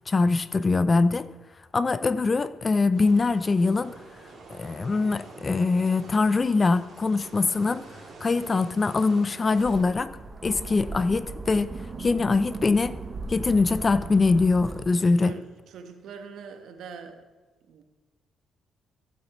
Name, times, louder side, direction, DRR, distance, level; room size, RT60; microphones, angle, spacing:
voice 1, 0.1-1.3 1.7-3.9 4.5-7.9 8.2-10.2 10.4-13.0 13.3-15.3, left 3 dB, 30° left, 0.5 m, -23 dB
sound 1, 2.9-9.8, right 4 dB, 55° right, 2.8 m, -47 dB
sound 2, 9.6-14.8, right 3 dB, 35° right, 0.9 m, -37 dB
voice 2, 14.9-17.2 17.7-17.8, right 5 dB, 75° right, 1.2 m, -43 dB
15.5 x 8.4 x 3.1 m
cardioid pair, 90°, 0 cm